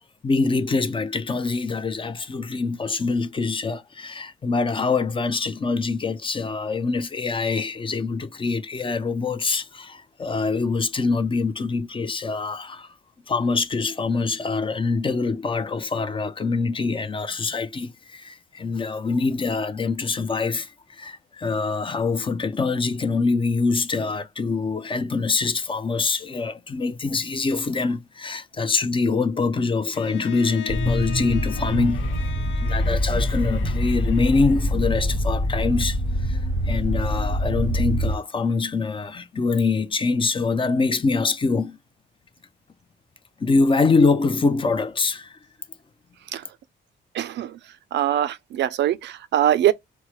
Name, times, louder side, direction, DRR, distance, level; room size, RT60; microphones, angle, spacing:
voice 1, 0.2-12.9 13.3-32.0 32.6-36.4 36.7-41.8 43.4-45.4, left 4 dB, 25° left, 0.5 m, -24 dB
Bowed string instrument, 29.9-34.8, left 9 dB, 90° left, 0.5 m, -39 dB
sound 1, 30.7-38.2, equal, 70° left, 1.1 m, -24 dB
voice 2, 47.1-47.6 47.9-49.7, right 11 dB, 60° right, 0.4 m, -22 dB
4.4 x 2.0 x 3.1 m
cardioid pair, 90°, 20 cm